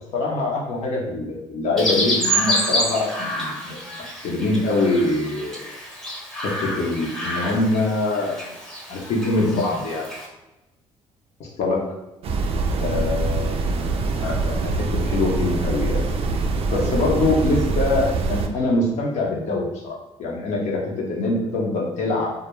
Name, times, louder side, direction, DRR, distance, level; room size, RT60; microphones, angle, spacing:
voice 1, 0.1-5.6 6.4-8.5 8.9-10.1 11.4-11.9 12.8-13.6 14.2-16.0 16.7-22.3, left 2 dB, 65° left, -2 dB, 0.7 m, -24 dB
Chirp tweet, 1.8-10.3, equal, ahead, 0.8 m, -28 dB
sound 1, 12.2-18.5, right 3 dB, 50° right, 0.3 m, -24 dB
2.3 x 2.2 x 3.0 m, 0.99 s
supercardioid pair, 70°, 13 cm